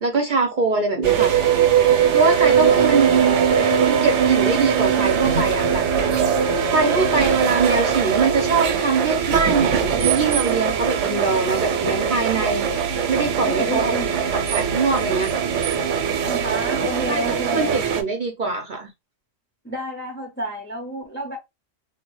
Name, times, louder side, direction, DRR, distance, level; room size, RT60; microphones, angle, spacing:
voice 1, 0.0-1.3 2.1-3.3 3.8-5.8 6.7-12.7 13.1-13.9 14.5-15.3 17.1-18.9, right 4 dB, 50° right, 0.6 m, -22 dB
sound 1, 1.0-18.0, right 7 dB, 75° right, 0.9 m, -21 dB
voice 2, 2.2-2.8 3.2-4.0 13.4-14.1 16.2-17.8 19.6-21.4, equal, 15° left, 0.4 m, -30 dB
3.4 x 2.1 x 3.0 m
omnidirectional pair, 1.3 m